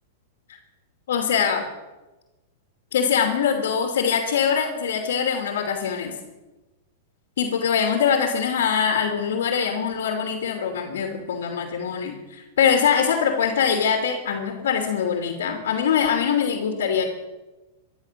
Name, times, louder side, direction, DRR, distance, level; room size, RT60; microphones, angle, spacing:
voice 1, 1.1-1.7 2.9-6.1 7.4-17.0, left 7 dB, 80° left, 3 dB, 2.9 m, -23 dB
15.5 x 12.0 x 6.9 m, 1.1 s
hypercardioid pair, 135°, 0 cm